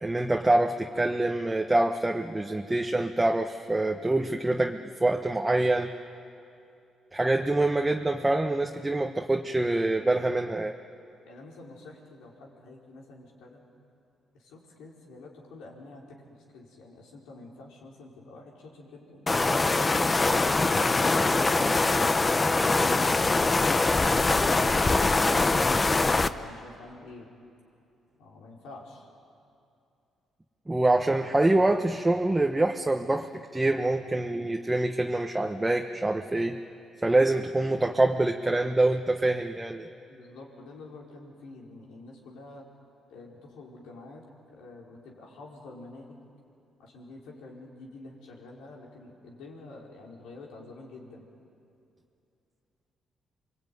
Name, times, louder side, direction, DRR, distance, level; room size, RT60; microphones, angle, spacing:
voice 1, 0.0-5.9 7.1-10.7 30.7-36.6 37.0-39.9, right 2 dB, 15° right, 3 dB, 1.2 m, -25 dB
voice 2, 11.2-13.7 14.3-19.2 24.1-27.3 28.2-29.1 40.1-42.7 43.1-46.2 46.8-51.2, left 2 dB, 90° left, -2 dB, 5.1 m, -47 dB
sound 1, 19.3-26.3, left 3 dB, 25° left, 0.9 m, -23 dB
27.5 x 22.0 x 9.5 m, 2.6 s
cardioid pair, 90°, 0 cm